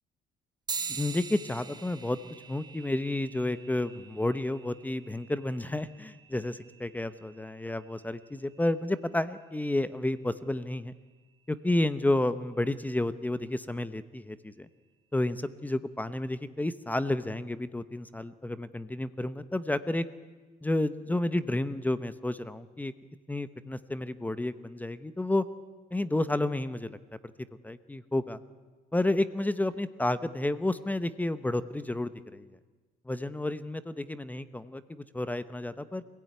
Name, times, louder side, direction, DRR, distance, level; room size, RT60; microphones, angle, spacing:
sound 1, 0.7-10.5, right 5 dB, 25° right, 1.2 m, -45 dB
voice 1, 0.9-2.2 2.5-10.9 11.5-14.7 15.1-20.0 20.6-22.9 23.3-25.4 25.9-27.0 27.6-28.4 28.9-32.5 33.1-36.0, left 1 dB, 10° left, 13 dB, 0.9 m, -31 dB
26.0 x 17.0 x 9.4 m, 1.3 s
cardioid pair, 110°, 17 cm